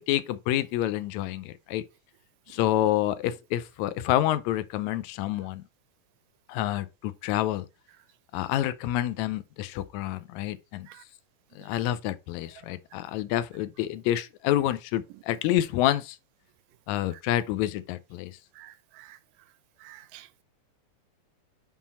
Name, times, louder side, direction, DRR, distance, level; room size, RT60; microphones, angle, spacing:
voice 1, 0.0-1.8 2.5-5.6 6.5-7.7 8.3-10.9 11.5-16.2 16.9-18.4, left 13 dB, 85° left, 1.6 m, -28 dB
voice 2, 18.6-19.2 19.8-20.4, right 15 dB, 85° right, 2.2 m, -50 dB
7.2 x 3.7 x 4.2 m
omnidirectional pair, 3.8 m